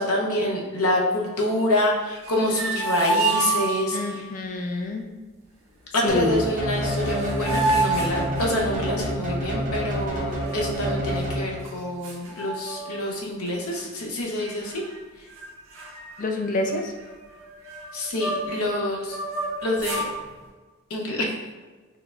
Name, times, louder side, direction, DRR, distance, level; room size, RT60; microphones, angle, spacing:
voice 1, 0.0-4.2 5.9-14.8 17.9-19.2 19.6-20.0 20.9-21.3, left 1 dB, 85° left, -1 dB, 0.8 m, -26 dB
sound 1, 2.2-4.2 6.4-6.5 6.7-8.9 10.3-11.1 11.7-11.8 12.0-13.1 13.5-13.8 14.4-15.0 15.3-15.5 15.7-18.6 19.0-20.1, right 2 dB, 65° right, 1.1 m, -29 dB
voice 2, 3.9-5.1 6.0-6.5 16.2-16.9, left 2 dB, 35° left, 2 dB, 0.4 m, -27 dB
sound 2, 6.1-11.8, right 1 dB, 35° right, 0.7 m, -28 dB
4.7 x 3.1 x 2.4 m, 1.3 s
head